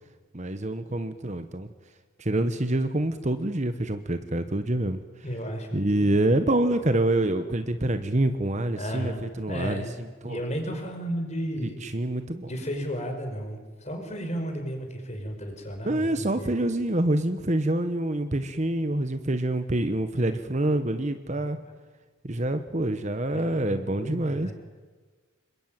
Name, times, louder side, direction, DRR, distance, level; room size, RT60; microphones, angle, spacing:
voice 1, 0.3-1.7 2.2-5.0 5.7-9.8 10.2-10.4 11.6-12.5 15.8-21.6 22.2-24.5, right 1 dB, 35° right, 9 dB, 1.1 m, -26 dB
voice 2, 5.2-6.2 8.7-9.9 10.2-11.8 12.4-16.5 21.5-21.6 23.3-24.5, equal, 30° left, 4 dB, 5.2 m, -34 dB
26.5 x 22.0 x 9.1 m, 1.4 s
head